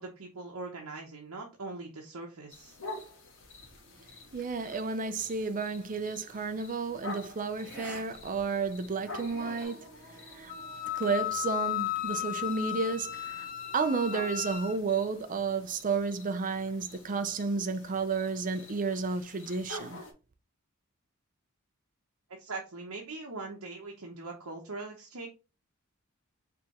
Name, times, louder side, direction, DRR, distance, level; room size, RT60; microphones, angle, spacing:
voice 1, 0.0-2.8 22.4-25.3, right 3 dB, 75° right, 0.9 m, -41 dB
sound 1, 2.5-20.1, left 1 dB, 65° left, 1.6 m, -48 dB
voice 2, 4.3-10.5 10.9-13.5 13.7-20.0, right 4 dB, 40° right, 0.6 m, -32 dB
sound 2, 6.0-6.3 7.6-8.0 8.4-8.5 9.0-9.7, equal, 5° right, 2.7 m, -46 dB
Wind instrument woodwind instrument, 10.5-14.8, left 13 dB, 40° left, 0.6 m, -35 dB
4.9 x 3.5 x 2.9 m
head